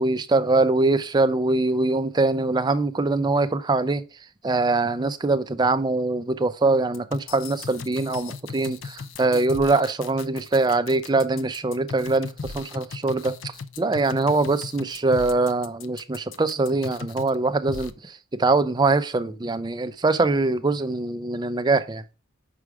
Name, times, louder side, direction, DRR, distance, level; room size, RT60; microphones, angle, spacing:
voice 1, 0.0-4.0 4.4-22.0, right 3 dB, 20° right, 0.4 m, -23 dB
sound 1, 6.9-17.3 17.7-17.9, left 4 dB, 70° left, 0.5 m, -37 dB
6.1 x 4.7 x 4.8 m
head